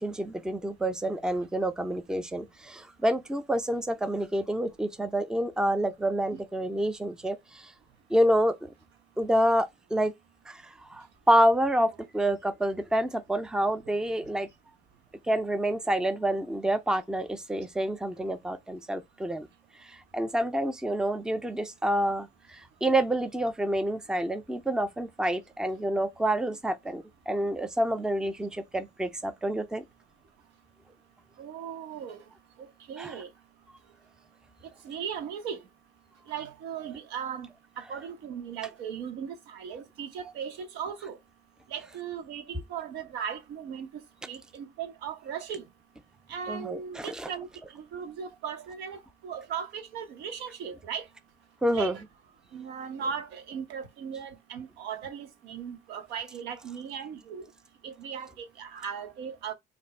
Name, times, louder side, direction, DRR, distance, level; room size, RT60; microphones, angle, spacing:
voice 1, 0.0-7.7 8.1-8.7 9.2-10.1 10.5-14.5 15.3-19.5 19.8-29.8 33.0-33.1 46.5-47.3 51.6-52.0, right 1 dB, 5° right, 0.4 m, -28 dB
voice 2, 31.4-32.2 32.6-33.3 34.8-35.6 36.3-37.5 37.8-41.2 41.7-43.9 44.3-45.6 46.3-51.1 51.7-52.0 52.5-57.4 57.8-59.5, right 7 dB, 90° right, 0.9 m, -37 dB
2.8 x 2.6 x 4.2 m
cardioid pair, 110°, 17 cm